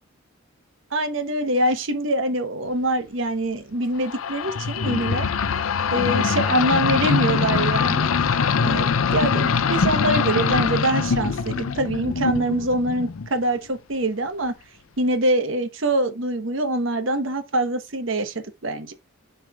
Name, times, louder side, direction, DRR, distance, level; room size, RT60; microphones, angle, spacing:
voice 1, 0.9-5.3 5.9-8.1 8.6-14.5 15.0-18.9, right 1 dB, 65° right, 1.1 m, -24 dB
sound 1, 4.0-13.4, left 6 dB, 85° left, 0.6 m, -23 dB
6.4 x 3.4 x 4.7 m
head